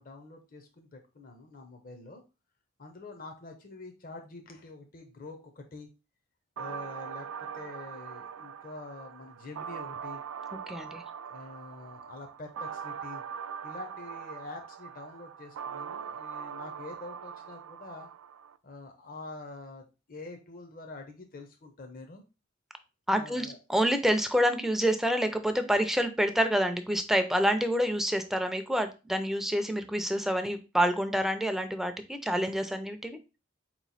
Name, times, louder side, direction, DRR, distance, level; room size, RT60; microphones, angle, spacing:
voice 1, 0.0-2.2 2.8-5.9 6.6-10.2 11.2-13.2 13.6-18.1 18.6-22.2 23.1-23.6, left 3 dB, 45° left, 4 dB, 0.7 m, -46 dB
sound 1, 6.6-18.6, right 7 dB, 90° right, 0.3 m, -41 dB
voice 2, 10.7-11.0 23.1-33.2, equal, ahead, 7 dB, 0.5 m, -27 dB
4.3 x 3.1 x 4.1 m, 0.30 s
head